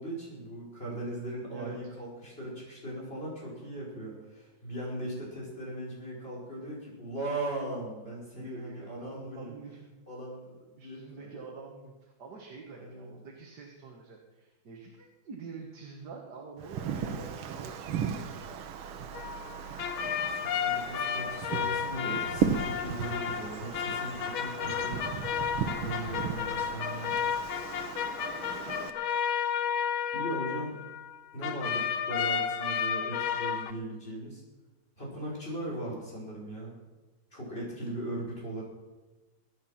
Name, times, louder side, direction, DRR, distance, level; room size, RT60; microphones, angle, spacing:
voice 1, 0.0-9.5 10.1-11.5 12.8-13.1 16.9-17.3 20.2-27.2 30.1-30.8 31.3-34.4 35.0-36.7 37.3-38.6, right 1 dB, 25° left, -4 dB, 5.4 m, -39 dB
voice 2, 8.3-9.9 10.8-19.2, right 4 dB, 55° right, 0 dB, 2.0 m, -47 dB
Wind, 16.6-28.9, right 7 dB, 85° right, 1.8 m, -36 dB
sound 1, 19.1-31.2 31.4-33.7, left 7 dB, 80° left, 1.7 m, -32 dB
22.5 x 9.1 x 5.8 m, 1.2 s
omnidirectional pair, 2.2 m